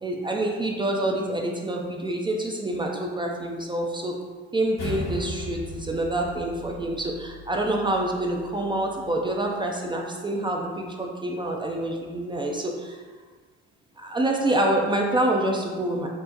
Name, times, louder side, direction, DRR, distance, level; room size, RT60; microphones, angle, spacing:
voice 1, 0.0-4.2 4.5-13.0 14.0-16.1, right 1 dB, 15° right, 0 dB, 0.4 m, -27 dB
sound 1, 4.8-9.3, equal, 80° left, 1.2 m, -38 dB
4.5 x 2.1 x 2.8 m, 1.5 s
hypercardioid pair, 65°, 31 cm